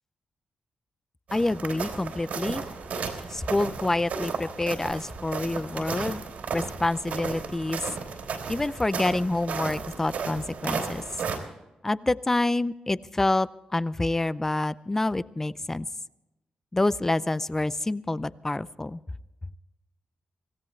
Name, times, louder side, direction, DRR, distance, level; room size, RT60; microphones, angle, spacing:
voice 1, 1.3-2.6 3.3-6.2 6.5-7.8 8.5-11.0 11.8-15.9 16.7-19.0, left 2 dB, 15° left, 16 dB, 0.5 m, -27 dB
sound 1, 1.3-11.4, right 5 dB, 80° right, 3.3 m, -34 dB
24.5 x 17.0 x 3.2 m, 1.0 s
wide cardioid pair, 120°, 2 cm